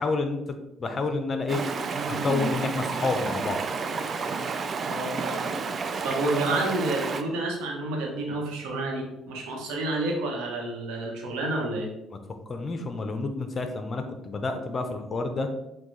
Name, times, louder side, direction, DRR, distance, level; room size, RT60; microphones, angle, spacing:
voice 1, 0.0-1.6 2.1-3.6 12.5-15.5, left 3 dB, 40° left, 6 dB, 0.7 m, -29 dB
Stream, 1.5-7.2, right 4 dB, 45° right, 0.4 m, -30 dB
voice 2, 4.9-5.5 6.0-11.9, right 2 dB, 85° right, 0 dB, 1.0 m, -29 dB
6.3 x 2.3 x 3.2 m, 0.90 s
supercardioid pair, 80°, 0 cm